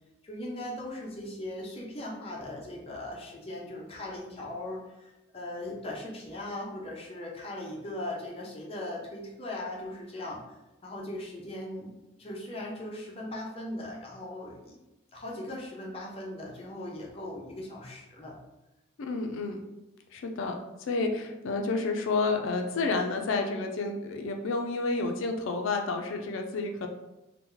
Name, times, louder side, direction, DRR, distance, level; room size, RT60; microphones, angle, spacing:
voice 1, 0.2-11.9 12.2-14.8 15.1-18.4, left 1 dB, 30° left, -2 dB, 0.5 m, -39 dB
voice 2, 19.0-19.6 20.1-26.9, left 3 dB, 75° left, 4 dB, 0.4 m, -30 dB
2.8 x 2.1 x 3.7 m, 0.98 s
head